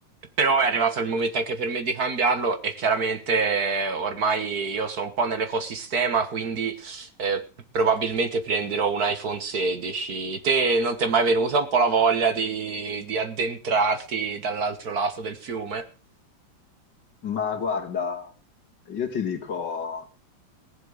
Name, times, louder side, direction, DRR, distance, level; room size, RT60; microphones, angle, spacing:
voice 1, 0.4-7.4 7.7-15.9, right 4 dB, 50° right, 10 dB, 1.8 m, -25 dB
voice 2, 17.2-18.3 18.9-20.1, left 6 dB, 60° left, 6 dB, 2.6 m, -29 dB
18.5 x 7.7 x 6.3 m, 0.35 s
omnidirectional pair, 2.1 m